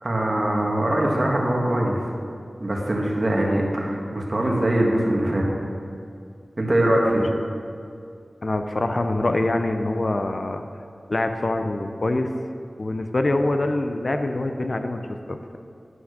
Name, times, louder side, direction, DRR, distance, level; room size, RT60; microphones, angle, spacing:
voice 1, 0.0-2.0 2.6-5.4 6.6-7.2, right 1 dB, 45° right, -1 dB, 1.8 m, -22 dB
voice 2, 8.4-10.6 11.1-12.3 12.8-15.0 15.3-15.6, left 2 dB, 55° left, 6 dB, 0.6 m, -24 dB
11.0 x 5.9 x 6.5 m, 2.4 s
wide cardioid pair, 60°, 0 cm